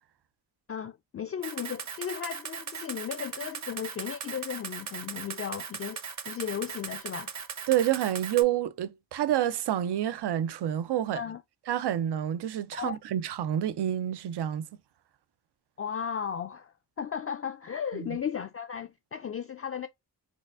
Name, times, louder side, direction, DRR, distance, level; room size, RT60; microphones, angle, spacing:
voice 1, 0.7-7.3 11.1-11.4 12.7-13.0 15.8-19.9, left 8 dB, 35° left, 0.4 m, -35 dB
Camera, 1.4-8.4, right 6 dB, 45° right, 0.8 m, -38 dB
voice 2, 7.7-11.2 11.7-14.7 17.9-18.2, right 11 dB, 75° right, 0.6 m, -28 dB
4.4 x 2.3 x 2.4 m
cardioid pair, 55°, 40 cm